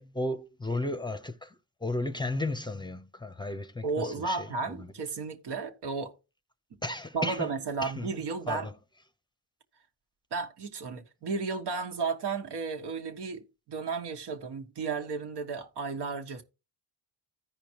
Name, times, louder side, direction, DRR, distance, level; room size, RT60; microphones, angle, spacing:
voice 1, 0.0-4.9 6.8-7.5 7.8-8.1 8.5-8.7, left 2 dB, 10° left, 0.7 m, -34 dB
voice 2, 3.8-6.1 7.1-8.7 10.3-16.4, right 4 dB, 70° right, 1.7 m, -33 dB
15.0 x 5.1 x 3.0 m
cardioid pair, 90°, 41 cm